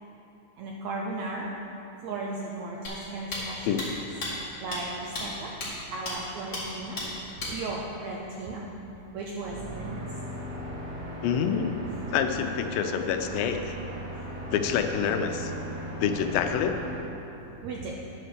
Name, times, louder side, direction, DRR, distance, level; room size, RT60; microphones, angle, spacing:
voice 1, 0.6-1.5 2.0-4.1 4.6-5.5 5.9-7.0 7.5-8.6 9.1-10.1 17.6-17.9, right 3 dB, 80° right, -2 dB, 1.6 m, -36 dB
sound 1, 2.8-2.9 3.3-3.4 3.8-3.9 4.2-4.3 4.7-4.8 5.1-5.2 5.6-5.7 6.1-6.2 6.5-6.6 7.0-7.1 7.4-7.5, left 2 dB, 30° left, 2.0 m, -33 dB
sound 2, 9.4-17.0, equal, 60° right, 1.1 m, -37 dB
voice 2, 11.2-11.8 12.1-13.7 14.5-15.5 16.0-16.8, left 7 dB, 90° left, 6 dB, 2.4 m, -27 dB
10.5 x 5.4 x 6.7 m, 2.9 s
omnidirectional pair, 4.0 m